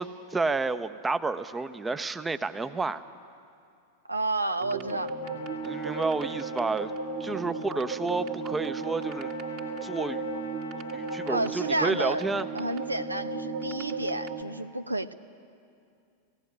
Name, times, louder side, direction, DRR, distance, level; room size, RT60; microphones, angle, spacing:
voice 1, 0.0-3.0 5.6-6.9 7.2-9.3 9.8-10.2 10.9-12.5, right 3 dB, 10° right, 11 dB, 0.7 m, -30 dB
voice 2, 4.1-5.1 7.3-7.4 11.3-12.3 12.5-15.1, right 2 dB, 80° right, 11 dB, 0.6 m, -31 dB
sound 1, 4.6-14.4, right 3 dB, 45° right, 2.1 m, -35 dB
Trumpet, 5.2-12.6, left 6 dB, 70° left, 1.2 m, -47 dB
17.0 x 17.0 x 9.8 m, 2.4 s
figure-of-eight pair, 90°, 0 cm